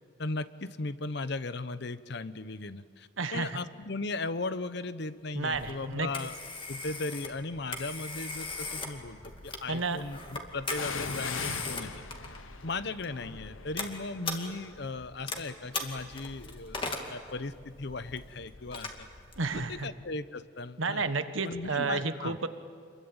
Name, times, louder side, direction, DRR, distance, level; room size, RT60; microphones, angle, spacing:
voice 1, 0.2-6.4 6.7-11.9 12.6-16.8 17.1-19.1 19.5-21.1 21.4-22.4, left 3 dB, 55° left, 13 dB, 0.9 m, -37 dB
voice 2, 3.2-3.6 5.3-6.1 9.7-10.0 11.4-11.6 19.4-19.9 20.8-22.5, right 3 dB, 80° right, 9 dB, 1.4 m, -31 dB
Telephone, 5.5-19.8, left 3 dB, 25° left, 2.4 m, -40 dB
sound 1, 5.7-6.1 6.9-7.8 10.7-18.3 18.6-18.7, left 5 dB, 80° left, 1.1 m, -43 dB
28.0 x 22.5 x 8.9 m, 2.3 s
head